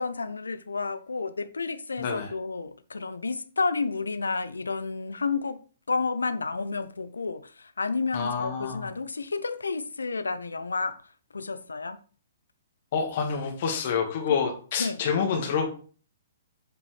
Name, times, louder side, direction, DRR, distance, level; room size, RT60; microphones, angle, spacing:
voice 1, 0.0-5.6 5.9-10.9 11.3-12.0 14.3-14.4 14.8-15.0, left 4 dB, 80° left, 0.7 m, -31 dB
voice 2, 2.0-2.3 8.1-8.9 12.9-15.7, left 6 dB, 50° left, 1.7 m, -27 dB
7.9 x 5.3 x 3.3 m
figure-of-eight pair, 125°, 0 cm